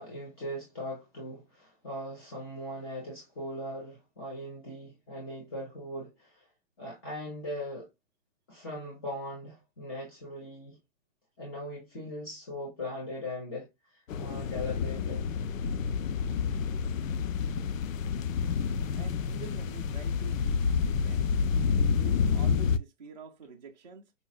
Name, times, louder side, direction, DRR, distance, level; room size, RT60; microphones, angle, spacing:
voice 1, 0.0-6.5 6.8-7.9 8.5-10.8 11.4-15.3, left 1 dB, 20° left, 0.8 m, -39 dB
sound 1, 14.1-22.8, left 6 dB, 85° left, 0.5 m, -29 dB
voice 2, 18.9-21.4 21.9-24.1, right 6 dB, 35° right, 0.4 m, -47 dB
5.0 x 2.3 x 2.3 m
hypercardioid pair, 170°, 39 cm